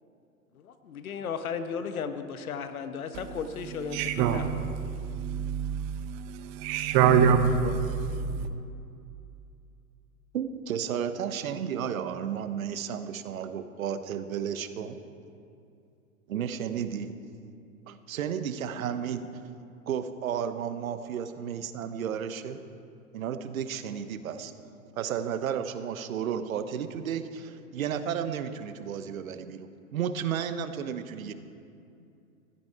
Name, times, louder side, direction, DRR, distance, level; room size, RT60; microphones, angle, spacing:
voice 1, 0.6-4.0 4.2-4.6, left 6 dB, 80° left, 9 dB, 1.2 m, -35 dB
voice 2, 3.9-8.5, right 7 dB, 40° right, 9 dB, 1.1 m, -25 dB
voice 3, 10.3-15.0 16.3-17.1 17.9-19.3 19.9-22.6 23.1-24.5 25.0-31.3, right 8 dB, 75° right, 10 dB, 1.1 m, -33 dB
15.5 x 13.0 x 4.7 m, 2.5 s
hypercardioid pair, 110°, 42 cm